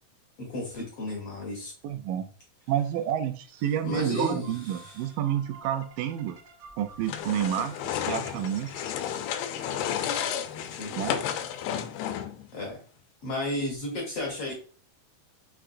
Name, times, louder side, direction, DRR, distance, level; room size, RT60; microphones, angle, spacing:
voice 1, 0.4-1.7 3.8-5.1 10.7-11.0 12.5-12.8 13.2-14.5, left 1 dB, 70° left, -2 dB, 1.3 m, -33 dB
voice 2, 1.8-2.3 2.7-6.4 6.8-8.7 11.0-11.2, right 10 dB, 80° right, 8 dB, 2.0 m, -29 dB
sound 1, 4.4-10.5, right 3 dB, 65° right, 1.0 m, -52 dB
sound 2, 7.0-12.5, left 9 dB, 85° left, 2.4 m, -32 dB
5.7 x 3.5 x 2.5 m, 0.39 s
omnidirectional pair, 4.2 m